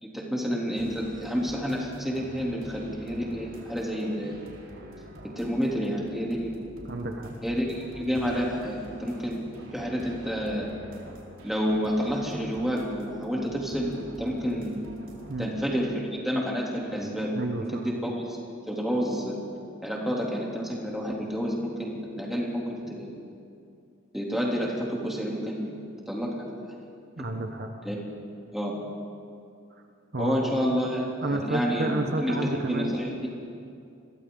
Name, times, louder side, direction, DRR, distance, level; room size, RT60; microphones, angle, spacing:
voice 1, 0.0-4.4 5.3-6.5 7.4-9.4 9.7-10.7 11.4-14.9 15.4-17.3 17.8-18.4 18.6-19.4 19.8-22.6 22.9-23.2 24.1-25.7 26.1-26.4 27.8-28.0 28.5-28.7 30.2-31.9 32.2-33.3, equal, ahead, -3 dB, 3.2 m, -29 dB
sound 1, 0.8-15.5, equal, 70° right, 4.3 m, -46 dB
voice 2, 6.9-7.3 15.3-15.5 17.3-17.9 27.2-27.7 30.1-30.4 31.2-33.0, right 2 dB, 50° right, 4 dB, 1.2 m, -30 dB
29.5 x 22.5 x 4.0 m, 2.5 s
head